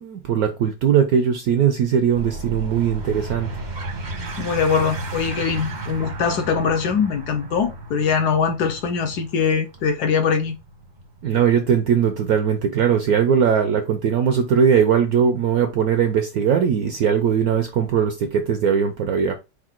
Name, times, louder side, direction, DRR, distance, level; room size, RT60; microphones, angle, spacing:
voice 1, 0.0-3.5 11.2-19.4, right 7 dB, 75° right, 0.8 m, -19 dB
sound 1, 2.1-13.2, right 2 dB, 45° right, 0.6 m, -34 dB
voice 2, 4.4-10.6, left 6 dB, 70° left, 1.0 m, -22 dB
4.9 x 2.2 x 4.4 m
omnidirectional pair, 2.1 m